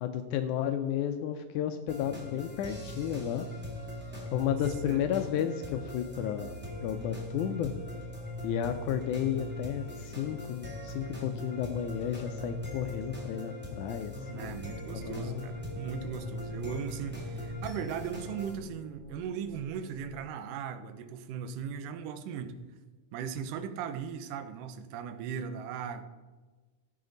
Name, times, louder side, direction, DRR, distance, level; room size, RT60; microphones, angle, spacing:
voice 1, 0.0-3.5 4.3-7.7 8.4-14.6 14.9-15.5, left 10 dB, 85° left, 8 dB, 1.7 m, -32 dB
sound 1, 1.9-18.5, left 1 dB, 5° right, 0.9 m, -40 dB
sound 2, 14.3-20.3, left 1 dB, 50° right, 3.6 m, -50 dB
voice 2, 14.3-22.6 23.1-26.0, right 7 dB, 75° right, 9 dB, 2.3 m, -38 dB
15.5 x 5.8 x 3.9 m, 1.3 s
omnidirectional pair, 4.0 m